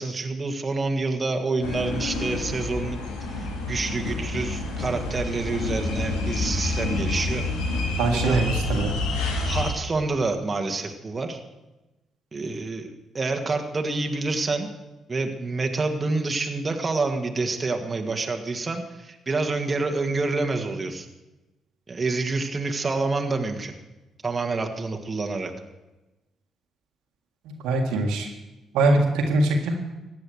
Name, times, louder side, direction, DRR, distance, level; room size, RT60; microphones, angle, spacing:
voice 1, 0.0-3.0 3.3-7.4 8.1-8.5 9.4-11.4 12.3-14.7 15.1-21.1 21.9-23.8 24.2-25.5, right 3 dB, 35° right, 4 dB, 1.7 m, -27 dB
sound 1, 1.6-9.7, left 2 dB, 80° left, 2.3 m, -28 dB
voice 2, 8.0-8.9 27.4-28.3 28.7-29.8, right 2 dB, 80° right, 3 dB, 1.8 m, -22 dB
15.0 x 9.6 x 6.4 m, 1.1 s
hypercardioid pair, 50°, 0 cm